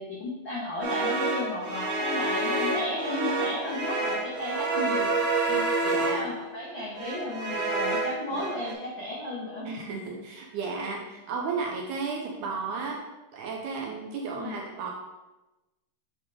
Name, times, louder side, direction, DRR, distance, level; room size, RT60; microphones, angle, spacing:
voice 1, 0.0-5.1 6.1-9.7 14.3-14.6, left 1 dB, 75° left, -6 dB, 1.1 m, -34 dB
sound 1, 0.8-6.5 7.0-8.7, right 2 dB, 50° right, 1.9 m, -28 dB
voice 2, 5.5-6.2 8.3-8.4 9.6-13.0 13.3-14.9, right 4 dB, 80° right, 0 dB, 1.9 m, -34 dB
7.3 x 3.5 x 4.6 m, 1.1 s
omnidirectional pair, 4.1 m